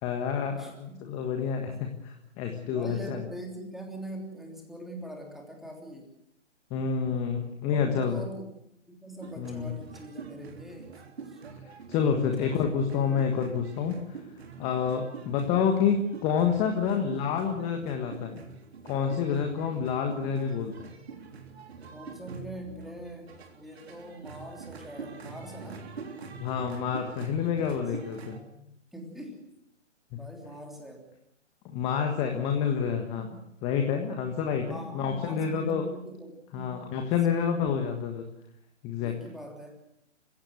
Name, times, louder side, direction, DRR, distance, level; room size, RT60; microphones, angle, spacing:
voice 1, 0.0-3.2 6.7-8.2 9.4-9.7 11.9-14.2 14.6-18.4 18.8-20.9 26.4-28.4 30.1-30.2 31.7-35.8 36.5-38.3 38.8-39.1, left 7 dB, 15° left, 4 dB, 1.5 m, -28 dB
voice 2, 0.6-1.0 1.6-1.7 2.6-6.1 7.7-8.4 8.9-11.0 11.3-11.4 12.2-12.7 21.9-25.9 28.2-29.5 30.1-31.1 34.7-36.9 37.5-37.8 39.0-39.8, right 1 dB, ahead, 1 dB, 3.3 m, -43 dB
sound 1, 9.2-28.4, right 5 dB, 55° right, 3.5 m, -45 dB
28.0 x 16.5 x 7.8 m, 0.80 s
figure-of-eight pair, 145°, 37 cm